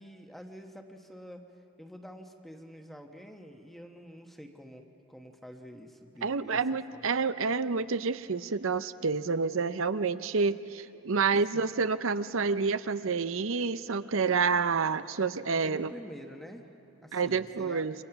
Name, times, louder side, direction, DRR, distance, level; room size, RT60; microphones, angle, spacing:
voice 1, 0.0-1.4 1.8-6.6 6.9-7.1 11.3-11.7 15.6-16.7 17.0-17.9, equal, ahead, 3 dB, 1.2 m, -47 dB
voice 2, 6.2-15.9 17.1-17.9, right 5 dB, 65° right, 13 dB, 0.7 m, -28 dB
28.5 x 26.0 x 5.9 m, 3.0 s
head